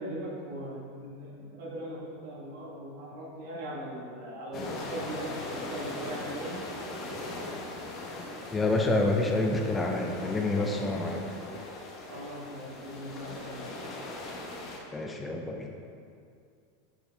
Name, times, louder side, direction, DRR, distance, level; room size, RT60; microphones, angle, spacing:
voice 1, 0.0-6.6 12.1-13.7, right 1 dB, 65° right, -4 dB, 1.4 m, -40 dB
sound 1, 4.5-14.8, left 2 dB, 30° left, 1.0 m, -40 dB
voice 2, 8.5-11.2 14.9-15.7, left 2 dB, 10° left, 1 dB, 0.4 m, -28 dB
7.8 x 4.6 x 3.4 m, 2.3 s
supercardioid pair, 155°, 0 cm